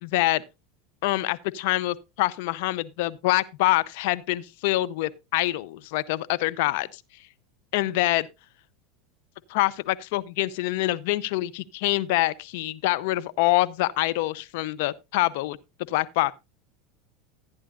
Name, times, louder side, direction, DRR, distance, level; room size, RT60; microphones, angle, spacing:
voice 1, 0.0-0.4 1.0-7.0 7.7-8.2 9.5-15.6 15.9-16.3, left 17 dB, 70° left, 0.7 m, -25 dB
14.5 x 9.7 x 2.5 m
hypercardioid pair, 105°, 0 cm